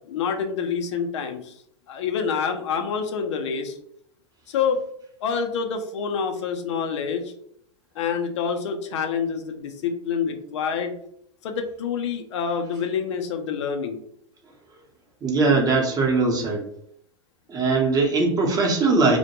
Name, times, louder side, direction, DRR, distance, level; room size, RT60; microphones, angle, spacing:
voice 1, 0.1-1.5 1.9-3.8 4.5-4.8 5.2-7.3 8.0-11.0 11.4-14.0, left 6 dB, 75° left, 5 dB, 0.5 m, -27 dB
voice 2, 15.2-16.6 17.5-19.2, right 3 dB, 25° right, 0 dB, 0.7 m, -20 dB
2.1 x 2.1 x 2.9 m, 0.70 s
hypercardioid pair, 105°, 15 cm